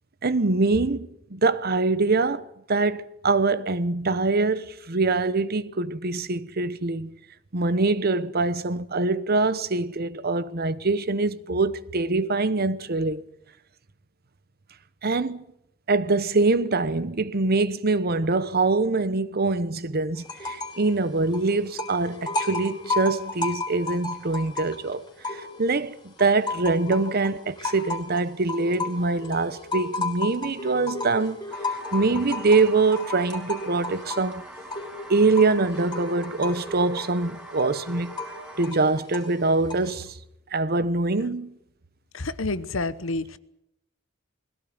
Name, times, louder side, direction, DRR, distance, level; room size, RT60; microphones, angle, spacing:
voice 1, 0.2-7.1 7.5-13.2 15.0-15.4 15.9-31.4 31.9-34.4 35.1-38.1 38.6-40.1 40.5-41.5, right 3 dB, 50° right, 1.0 m, -24 dB
sound 1, 20.2-20.9 21.1-25.8 26.2-40.0, left 3 dB, 20° left, 3.8 m, -34 dB
sound 2, 31.5-38.7, right 2 dB, 5° right, 1.3 m, -44 dB
voice 2, 42.1-43.4, left 2 dB, 75° left, 1.1 m, -29 dB
21.0 x 16.5 x 9.5 m
head